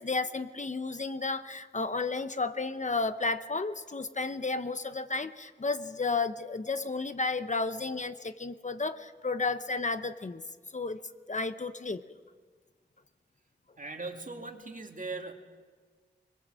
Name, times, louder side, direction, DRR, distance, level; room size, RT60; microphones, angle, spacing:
voice 1, 0.0-10.4 10.7-11.0 11.3-12.0, left 3 dB, 40° left, 11 dB, 0.9 m, -32 dB
voice 2, 13.8-15.3, right 3 dB, 45° right, 4 dB, 2.4 m, -39 dB
24.5 x 22.0 x 7.6 m, 1.5 s
wide cardioid pair, 95°, 18 cm